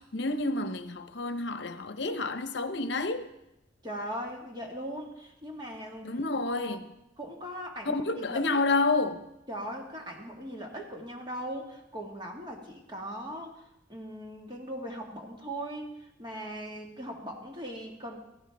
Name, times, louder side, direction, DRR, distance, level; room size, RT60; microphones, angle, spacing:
voice 1, 0.0-3.3 6.0-6.8 7.9-9.3, left 3 dB, 70° left, 0.9 m, -29 dB
voice 2, 3.8-6.1 6.4-6.8 7.2-8.4 9.5-18.2, equal, 25° right, 1.7 m, -39 dB
16.0 x 15.0 x 3.4 m
head